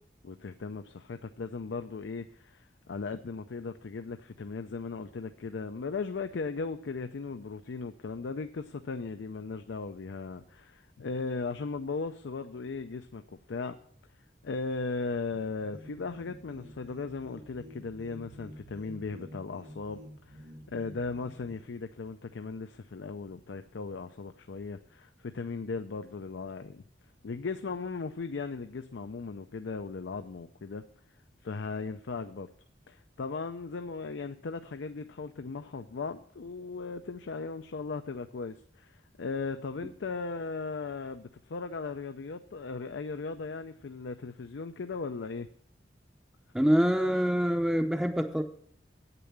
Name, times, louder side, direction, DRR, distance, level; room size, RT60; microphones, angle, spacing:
voice 1, 0.2-13.2 13.5-13.8 14.4-26.8 27.2-30.8 31.4-32.5 32.9-45.5, left 4 dB, 85° left, 0.5 m, -37 dB
sound 1, 15.7-21.7, equal, 75° right, 2.5 m, -49 dB
voice 2, 46.5-48.4, equal, 5° right, 0.5 m, -25 dB
8.8 x 6.8 x 7.3 m
head